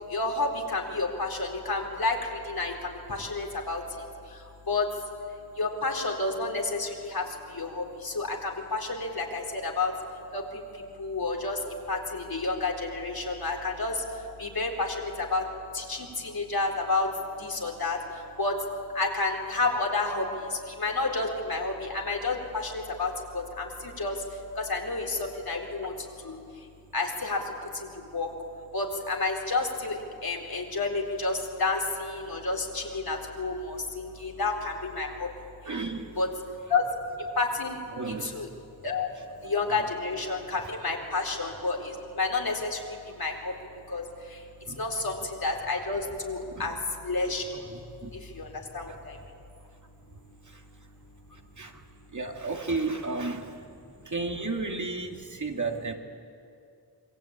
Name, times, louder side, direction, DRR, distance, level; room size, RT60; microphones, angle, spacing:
voice 1, 0.1-3.8 4.7-4.8 5.6-7.2 7.5-9.9 10.3-10.4 11.0-11.6 11.9-13.9 14.4-15.4 15.7-17.1 17.4-18.0 18.4-18.5 18.9-20.2 20.5-24.2 24.6-25.9 26.2-26.4 26.9-27.4 28.1-28.3 28.7-35.3 36.2-36.3 36.7-36.8 37.4-37.8 38.1-38.5 38.8-39.1 39.4-42.8 43.1-43.5 43.9-44.0 44.8-46.7 47.0-47.4 48.3-48.5 48.7-49.2, left 3 dB, 65° left, 1 dB, 4.2 m, -30 dB
voice 2, 35.7-36.1 37.9-38.4 44.7-44.8 46.5-46.7 47.7-48.1 50.5-50.6 51.6-51.8 52.1-53.5 54.1-55.9, right 3 dB, 50° right, 2 dB, 2.5 m, -33 dB
27.0 x 23.0 x 8.9 m, 2.5 s
wide cardioid pair, 80°, 39 cm